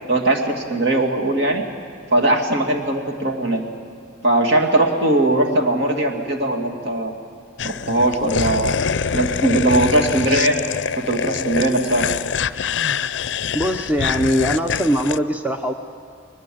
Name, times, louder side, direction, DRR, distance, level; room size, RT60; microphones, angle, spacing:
voice 1, 0.1-1.6 2.1-3.6 4.2-7.2 7.6-8.8 9.1-10.5 10.9-12.1, right 1 dB, 60° right, 1 dB, 2.3 m, -19 dB
sound 1, 7.6-15.2, left 6 dB, 65° left, 0.5 m, -25 dB
voice 2, 13.5-15.7, equal, 10° right, 5 dB, 0.7 m, -21 dB
21.0 x 20.5 x 7.8 m, 2.5 s
head